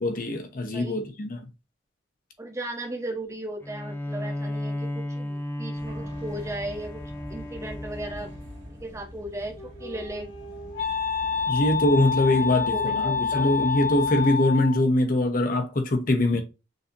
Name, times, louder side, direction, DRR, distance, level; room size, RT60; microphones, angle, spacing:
voice 1, 0.0-1.4 11.5-16.4, left 1 dB, 45° left, 0.6 m, -23 dB
voice 2, 2.4-7.0 7.3-8.3 8.7-10.3 12.3-13.5, right 1 dB, 15° right, 0.7 m, -36 dB
Bowed string instrument, 3.6-9.1, left 1 dB, 10° left, 0.3 m, -34 dB
sound 1, 5.8-14.3, equal, 60° right, 1.8 m, -44 dB
Wind instrument woodwind instrument, 9.4-14.9, left 5 dB, 85° left, 1.5 m, -28 dB
6.5 x 2.7 x 2.6 m
head